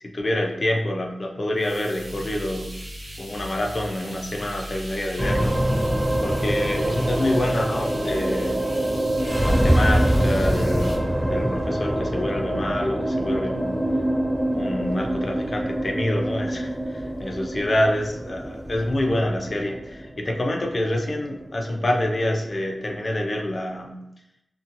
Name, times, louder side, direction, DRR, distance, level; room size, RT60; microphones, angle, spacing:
voice 1, 0.0-2.8 3.2-5.5 6.2-8.6 9.4-13.8 14.5-24.0, left 1 dB, 50° left, 2 dB, 0.4 m, -27 dB
sound 1, 1.6-10.9, equal, 80° right, 0.8 m, -38 dB
sound 2, 5.2-23.7, right 1 dB, 25° right, 0.6 m, -25 dB
2.8 x 2.2 x 2.5 m, 0.84 s
wide cardioid pair, 65°, 0 cm